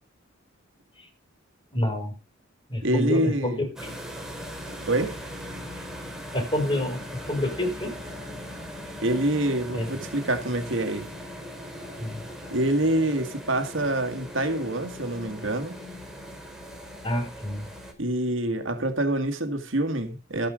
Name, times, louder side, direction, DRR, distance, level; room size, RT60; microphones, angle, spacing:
voice 1, 1.7-2.1 2.7-3.9 6.3-7.0 7.3-8.0 9.7-9.9 12.0-12.2 17.0-17.7, left 1 dB, 25° left, 5.0 m, -27 dB
voice 2, 2.8-3.6 4.9-5.2 9.0-11.1 12.5-15.7 18.0-20.5, right 1 dB, 70° right, 2.2 m, -26 dB
sound 1, 3.8-17.9, equal, ahead, 4.1 m, -39 dB
13.5 x 10.5 x 5.1 m
head